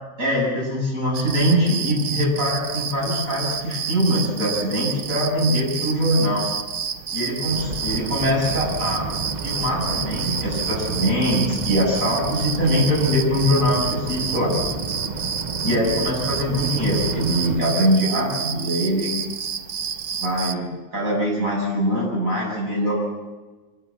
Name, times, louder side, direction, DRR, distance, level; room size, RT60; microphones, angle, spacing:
voice 1, 0.2-6.5 7.1-9.1 9.4-14.5 15.6-19.1 20.2-22.9, equal, 65° right, -4 dB, 8.4 m, -22 dB
sound 1, 1.1-20.5, right 7 dB, 80° right, 1.5 m, -30 dB
sound 2, 7.5-17.6, right 3 dB, 35° right, 1.0 m, -31 dB
25.5 x 19.5 x 8.7 m, 1.2 s
omnidirectional pair, 1.5 m